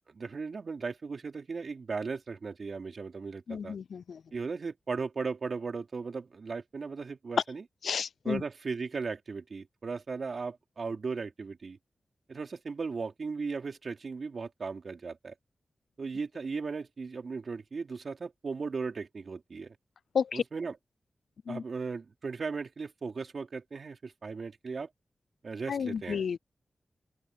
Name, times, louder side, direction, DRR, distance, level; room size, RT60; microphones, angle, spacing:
voice 1, 0.1-3.8 4.3-7.6 8.2-11.8 12.3-15.3 16.0-19.8 20.3-20.8 21.5-24.9 25.4-26.3, right 4 dB, 65° right, 3.7 m, -37 dB
voice 2, 3.5-4.2 7.8-8.4 20.1-20.4 21.5-21.6 25.7-26.4, left 6 dB, 90° left, 0.3 m, -32 dB
open air
cardioid pair, 65°, 0 cm